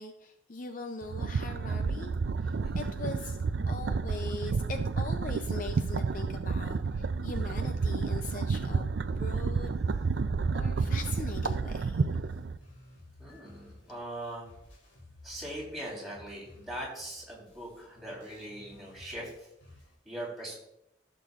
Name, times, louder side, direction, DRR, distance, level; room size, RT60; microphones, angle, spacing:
voice 1, 0.0-2.1 2.4-3.4 3.6-8.9 9.2-9.7 10.5-12.1, left 3 dB, 45° left, 6 dB, 0.5 m, -41 dB
sound 1, 1.0-12.6, right 4 dB, 70° right, 0.4 m, -30 dB
sound 2, 12.0-20.0, left 1 dB, 85° left, 3.0 m, -55 dB
voice 2, 13.2-14.5 15.2-19.3 20.1-20.6, right 1 dB, ahead, -5 dB, 3.5 m, -41 dB
15.0 x 6.7 x 2.4 m, 0.81 s
head